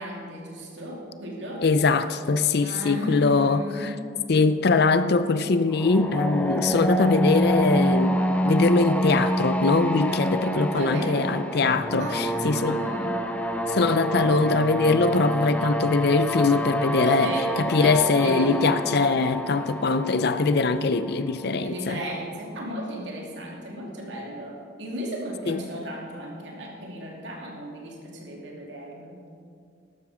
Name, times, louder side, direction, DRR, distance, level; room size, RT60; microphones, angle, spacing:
voice 1, 0.0-1.7 2.6-4.1 10.6-11.4 12.0-13.3 17.2-18.6 21.6-29.2, right 1 dB, 70° right, 2.8 m, -35 dB
voice 2, 1.6-3.9 4.3-12.8 13.7-17.3 17.6-22.0 25.5-25.6, left 3 dB, 60° left, 0.6 m, -22 dB
sound 1, 5.7-21.5, equal, 10° left, 0.6 m, -27 dB
13.0 x 12.0 x 5.0 m
head